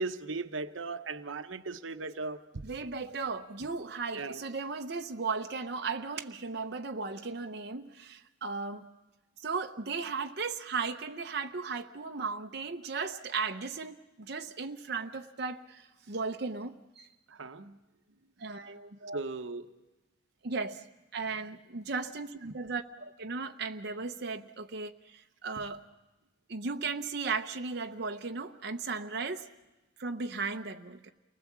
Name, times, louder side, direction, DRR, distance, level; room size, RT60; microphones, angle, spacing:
voice 1, 0.0-2.4 4.1-4.4 17.4-17.7 19.1-19.7, right 3 dB, 85° right, 9 dB, 0.9 m, -37 dB
voice 2, 2.6-8.9 9.4-17.1 18.4-19.3 20.4-20.8 21.1-25.8 26.5-29.5 30.0-31.1, right 4 dB, 55° right, 4 dB, 0.8 m, -36 dB
29.0 x 20.0 x 7.3 m, 1.1 s
head